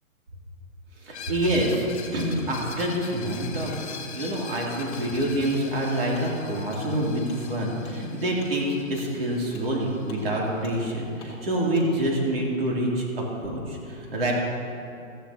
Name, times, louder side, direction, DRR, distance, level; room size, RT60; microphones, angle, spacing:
voice 1, 1.0-14.3, right 1 dB, 40° right, -3 dB, 3.1 m, -27 dB
Screech, 1.1-10.7, left 6 dB, 50° left, 1.5 m, -43 dB
Wood, 1.7-1.9 2.4-2.5 3.1-3.2 3.7-3.8 4.3-4.4 4.9-5.1 5.5-5.6 6.1-6.3 6.7-6.8 7.3-7.4 7.8-8.0 8.4-8.5 8.9-9.1 9.5-9.7 10.0-10.2 10.6-10.8 11.2-11.4 11.7-11.9, left 4 dB, 20° left, 1.5 m, -48 dB
15.0 x 14.5 x 2.9 m, 2.6 s
hypercardioid pair, 170°, 43 cm